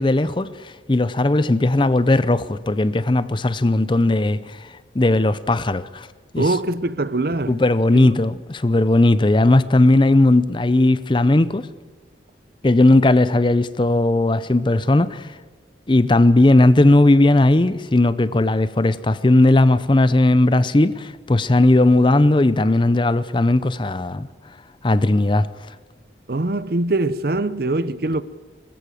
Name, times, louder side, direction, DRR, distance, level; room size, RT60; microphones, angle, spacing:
voice 1, 0.0-4.7 4.9-6.1 6.3-6.6 7.5-11.7 12.6-15.3 15.9-24.3 24.8-25.5, left 2 dB, 25° left, 0.5 m, -17 dB
voice 2, 6.4-7.6 26.3-28.2, right 2 dB, 55° right, 0.7 m, -22 dB
21.5 x 15.0 x 9.2 m
head